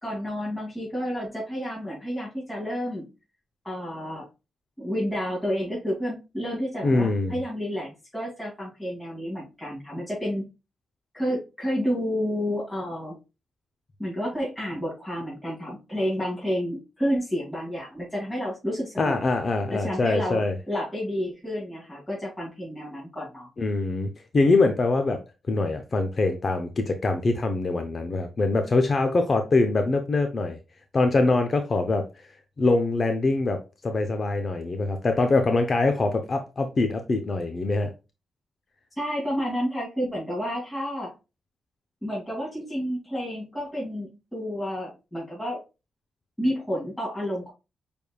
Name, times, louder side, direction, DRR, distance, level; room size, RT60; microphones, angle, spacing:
voice 1, 0.0-3.1 3.6-4.3 4.8-10.4 11.1-13.2 14.0-19.2 19.7-23.5 39.0-41.1 42.0-45.6 46.4-47.5, equal, 10° left, 2.7 m, -30 dB
voice 2, 6.8-7.4 19.0-20.6 23.6-25.2 25.5-30.6 30.9-32.3 32.6-37.9, left 3 dB, 40° left, 0.7 m, -24 dB
6.2 x 3.5 x 2.3 m
cardioid pair, 95°, 0 cm